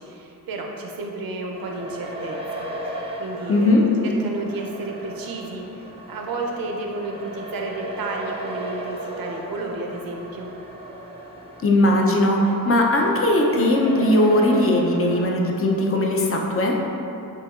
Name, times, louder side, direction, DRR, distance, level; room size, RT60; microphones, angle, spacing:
voice 1, 0.0-10.5, right 2 dB, 70° right, 1 dB, 0.7 m, -32 dB
sound 1, 1.5-15.2, right 1 dB, 15° right, 0.7 m, -36 dB
voice 2, 3.5-3.8 11.6-16.8, left 1 dB, 40° left, 0 dB, 0.6 m, -19 dB
6.8 x 2.8 x 2.4 m, 2.8 s
cardioid pair, 80°, 37 cm